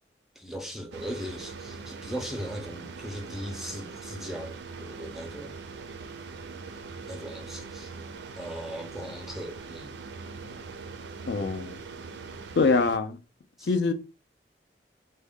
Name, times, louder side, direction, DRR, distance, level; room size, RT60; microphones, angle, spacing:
voice 1, 0.4-5.6 7.1-7.9 8.4-10.0 13.6-13.7, equal, ahead, 0.5 m, -38 dB
sound 1, 0.9-13.0, right 4 dB, 70° right, 0.4 m, -42 dB
voice 2, 11.3-11.8 12.6-13.2 13.7-13.9, left 4 dB, 65° left, 0.4 m, -24 dB
3.5 x 2.2 x 3.5 m
head